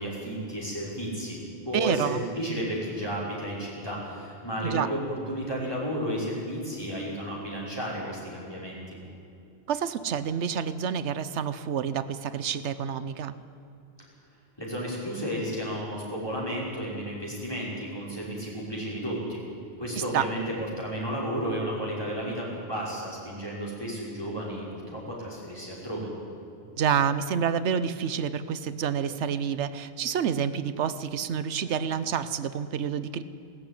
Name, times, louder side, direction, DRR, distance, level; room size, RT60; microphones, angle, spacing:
voice 1, 0.0-5.0 5.3-9.0 14.6-19.4 19.8-26.1, equal, 20° left, -5 dB, 5.7 m, -33 dB
voice 2, 1.7-2.2 4.6-4.9 9.7-13.4 20.1-20.3 26.8-33.2, right 7 dB, 85° right, 14 dB, 1.1 m, -28 dB
18.5 x 14.5 x 9.9 m, 2.6 s
omnidirectional pair, 1.1 m